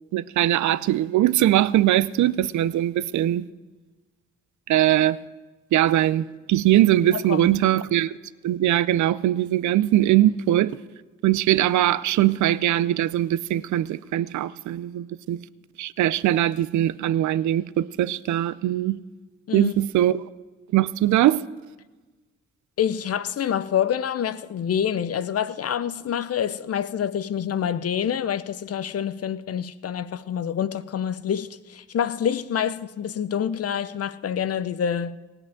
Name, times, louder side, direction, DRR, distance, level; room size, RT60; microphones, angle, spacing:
voice 1, 0.1-3.5 4.7-5.2 5.7-8.2 8.4-10.8 11.2-15.4 15.8-19.0 19.5-20.2 20.7-21.4, right 13 dB, 65° right, 0.5 m, -21 dB
voice 2, 22.8-35.2, left 8 dB, 50° left, 0.6 m, -27 dB
17.5 x 5.9 x 9.0 m
hypercardioid pair, 45°, 32 cm